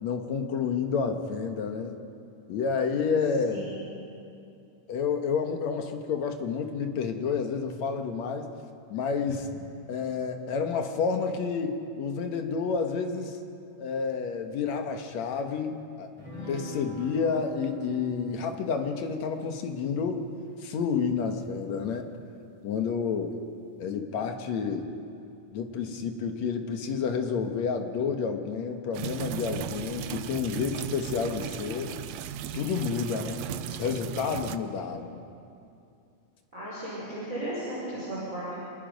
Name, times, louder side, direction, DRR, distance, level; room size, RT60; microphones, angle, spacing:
voice 1, 0.0-2.0 2.5-3.6 4.9-8.5 8.9-9.5 9.9-13.4 13.8-16.1 16.5-20.3 20.6-22.1 22.6-23.3 23.8-24.9 25.5-32.0 32.5-35.2, left 5 dB, 65° left, 5 dB, 2.4 m, -30 dB
voice 2, 3.4-4.0 36.5-38.6, right 1 dB, 25° right, -8 dB, 5.0 m, -35 dB
sound 1, 16.2-21.8, equal, 10° left, 4.3 m, -45 dB
sound 2, 28.9-34.6, right 11 dB, 80° right, 1.5 m, -37 dB
27.0 x 20.0 x 5.3 m, 2.6 s
omnidirectional pair, 3.8 m